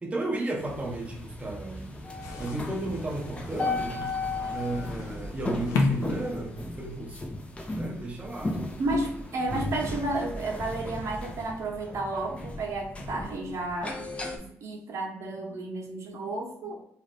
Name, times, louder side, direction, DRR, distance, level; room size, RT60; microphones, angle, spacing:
voice 1, 0.0-1.9 2.4-4.1 4.5-7.2 7.7-8.6, right 2 dB, 20° right, 0 dB, 0.6 m, -34 dB
sound 1, 0.6-14.4, left 2 dB, 20° left, 0.6 m, -36 dB
sound 2, 2.2-7.0, left 3 dB, 85° left, 0.5 m, -33 dB
voice 2, 8.8-14.0 14.3-16.8, right 2 dB, 65° right, 0 dB, 0.8 m, -32 dB
2.5 x 2.5 x 3.2 m, 0.73 s
cardioid pair, 75°, 6 cm